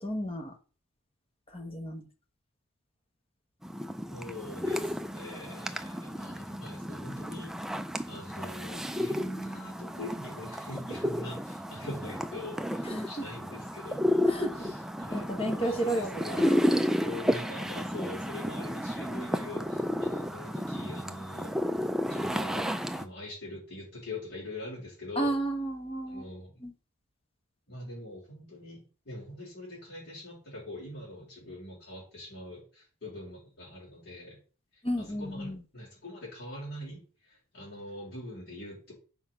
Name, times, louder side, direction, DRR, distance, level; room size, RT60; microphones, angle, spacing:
voice 1, 0.0-0.6 1.5-2.1 12.8-13.3 14.3-16.5 25.2-26.3 26.6-26.7 34.8-35.6, right 1 dB, 25° left, 1.2 m, -33 dB
sound 1, 3.6-23.1, equal, ahead, 0.4 m, -32 dB
voice 2, 4.1-7.5 8.0-14.3 14.5-16.4 17.0-21.5 22.1-22.7 22.9-25.3 26.1-26.6 27.7-34.4 34.7-38.9, left 1 dB, 45° left, 4.5 m, -43 dB
7.5 x 4.9 x 5.6 m
head